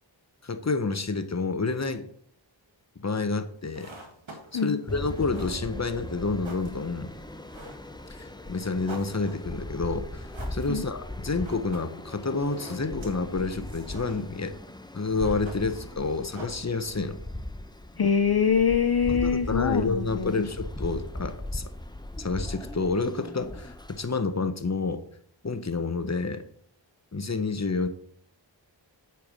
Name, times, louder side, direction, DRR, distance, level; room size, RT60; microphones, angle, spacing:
voice 1, 0.4-2.0 3.0-3.9 4.5-7.1 8.1-14.5 14.9-17.2 19.1-21.7 22.2-25.0 25.4-26.4 27.1-27.9, left 3 dB, 35° left, 9 dB, 1.0 m, -29 dB
sound 1, 3.6-17.2, right 2 dB, 85° right, 1.8 m, -49 dB
sound 2, 4.9-24.1, left 1 dB, 10° left, 0.6 m, -39 dB
voice 2, 18.0-20.4, left 6 dB, 55° left, 7 dB, 0.6 m, -24 dB
8.7 x 4.6 x 6.3 m, 0.62 s
wide cardioid pair, 40°, 46 cm